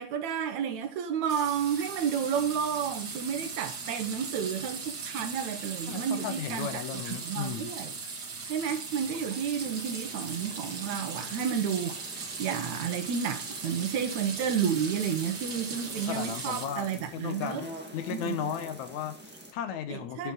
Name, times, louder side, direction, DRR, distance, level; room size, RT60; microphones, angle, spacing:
voice 1, 0.0-7.9 8.5-17.6 18.1-18.5 19.9-20.3, right 8 dB, 70° right, 2.4 m, -31 dB
sound 1, 1.3-16.6, right 4 dB, 40° right, 1.8 m, -39 dB
voice 2, 5.9-7.7 16.1-17.7 17.9-20.3, left 9 dB, 75° left, 2.2 m, -35 dB
sound 2, 9.6-19.5, equal, 15° right, 0.3 m, -46 dB
11.0 x 5.8 x 3.9 m
omnidirectional pair, 3.5 m